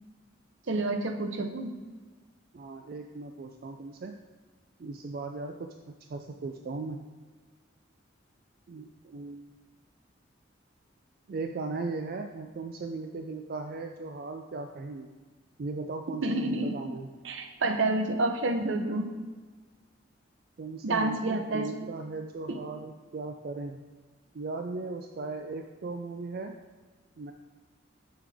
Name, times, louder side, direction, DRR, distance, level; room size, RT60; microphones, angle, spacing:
voice 1, 0.7-1.7 16.2-16.7 17.2-19.1 20.8-21.7 22.5-22.6, right 2 dB, 75° right, 7 dB, 0.7 m, -28 dB
voice 2, 2.5-4.2 4.8-5.7 6.1-7.0 8.7-9.5 11.3-15.1 15.6-17.1 20.6-23.8 24.3-26.5 27.2-27.3, right 3 dB, 50° right, 5 dB, 0.4 m, -37 dB
7.0 x 6.6 x 3.5 m, 1.4 s
head